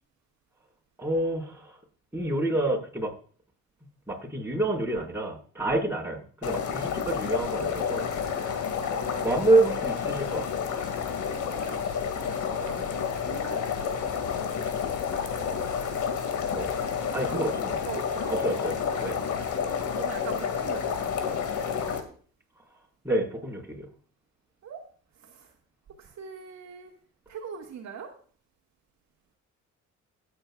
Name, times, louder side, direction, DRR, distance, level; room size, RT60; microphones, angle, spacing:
voice 1, 1.0-1.7 2.1-3.1 4.1-8.1 9.2-10.5 16.5-16.7 17.1-17.7 18.3-19.2 23.0-23.9, right 2 dB, 10° right, -1 dB, 4.7 m, -27 dB
sound 1, 6.4-22.0, left 7 dB, 75° left, 2.2 m, -30 dB
voice 2, 6.6-7.0 8.7-9.4 11.4-12.9 13.2-14.2 17.3-17.5 17.8-18.9 19.9-21.3 24.6-24.8 25.2-25.5 26.0-26.9 27.3-28.1, right 7 dB, 65° right, 1 dB, 2.1 m, -43 dB
20.0 x 8.8 x 2.4 m, 0.43 s
cardioid pair, 90°, 30 cm